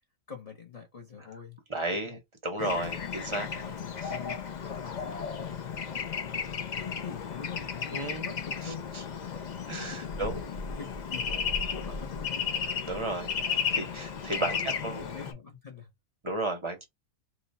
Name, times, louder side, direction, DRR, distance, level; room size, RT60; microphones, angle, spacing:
voice 1, 0.3-1.6 1.9-2.1 2.6-2.7 3.4-4.4 4.6-6.2 6.8-9.2 9.9-12.7 14.5-15.9, left 5 dB, 35° left, 0.7 m, -45 dB
voice 2, 1.7-3.5 4.0-4.1 7.9-8.3 9.7-10.4 12.9-15.0 16.2-16.8, right 2 dB, 30° right, 0.6 m, -33 dB
Bird / Traffic noise roadway noise, 2.6-15.3, left 6 dB, 85° left, 0.3 m, -34 dB
3.0 x 2.3 x 4.1 m
omnidirectional pair, 1.6 m